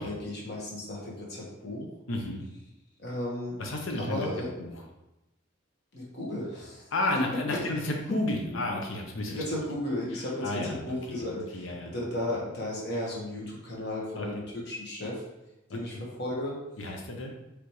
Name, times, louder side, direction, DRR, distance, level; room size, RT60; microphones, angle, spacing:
voice 1, 0.0-1.9 3.0-3.6 4.0-4.5 5.9-6.9 7.5-7.9 9.2-15.2 15.7-16.6, left 1 dB, 55° left, -4 dB, 1.4 m, -34 dB
voice 2, 2.1-2.4 3.6-4.3 4.6-4.7 6.9-9.4 10.4-11.2 11.5-11.9 14.2-14.3 15.7-15.8 16.8-17.3, left 2 dB, 80° left, 2 dB, 0.8 m, -32 dB
4.9 x 3.5 x 3.1 m, 0.96 s
head